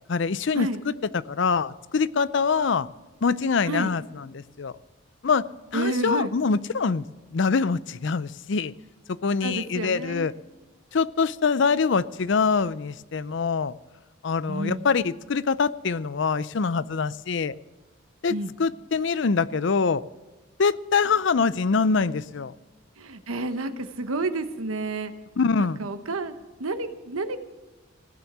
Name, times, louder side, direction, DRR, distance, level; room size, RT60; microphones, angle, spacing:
voice 1, 0.1-2.9 3.2-4.7 5.2-5.4 5.7-7.1 7.3-8.7 9.1-10.3 10.9-13.7 14.2-17.5 18.2-18.3 18.6-20.0 20.6-22.5 25.4-25.8, left 5 dB, 60° left, 17 dB, 0.5 m, -24 dB
voice 2, 5.7-6.3 9.4-10.3 14.5-14.8 18.3-18.5 23.0-25.1 25.6-26.3 26.6-27.4, right 2 dB, 90° right, 9 dB, 1.1 m, -30 dB
16.0 x 9.9 x 6.1 m, 1.2 s
head